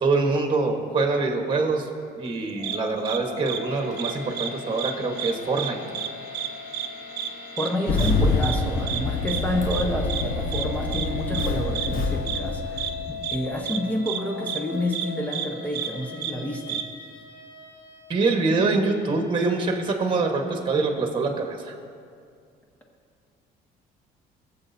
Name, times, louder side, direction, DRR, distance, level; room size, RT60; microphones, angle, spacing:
voice 1, 0.0-1.9 2.2-5.8 18.1-21.7, right 3 dB, 30° right, 3 dB, 1.3 m, -24 dB
sound 1, 2.5-20.8, left 5 dB, 80° left, 3.0 m, -40 dB
sound 2, 2.6-2.8 3.0-3.2 3.5-3.6 4.0-4.5 4.8-4.9 5.2-5.7 5.9-6.1 6.3-6.5 6.7-6.9 7.2-7.3 7.6-7.7 8.0-8.1 8.4-8.6 8.9-9.0 9.3-9.4 9.7-9.8 10.1-10.2 10.5-10.6 10.9-11.1 11.3-11.5 11.7-11.9 12.3-12.4 12.8-12.9 13.2-13.4 13.7-13.8 14.1-14.2 14.5-14.6 14.9-15.1 15.3-15.5 15.7-15.9 16.2-16.3 16.7-16.8, right 10 dB, 85° right, 0.6 m, -30 dB
voice 2, 7.6-16.8, left 1 dB, 10° left, 1 dB, 1.0 m, -29 dB
Engine starting, 7.9-13.4, left 3 dB, 55° left, 1.0 m, -26 dB
20.5 x 7.3 x 2.7 m, 2.2 s
cardioid pair, 110°, 17 cm